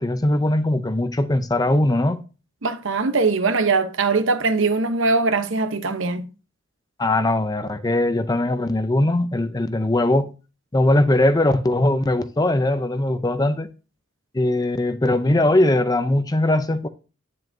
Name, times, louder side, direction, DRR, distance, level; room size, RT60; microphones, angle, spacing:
voice 1, 0.0-2.2 7.0-10.3 10.7-13.7 14.3-16.9, left 1 dB, 20° left, 0.5 m, -20 dB
voice 2, 2.6-6.2, right 3 dB, 65° right, 0.9 m, -21 dB
9.7 x 7.5 x 2.7 m
head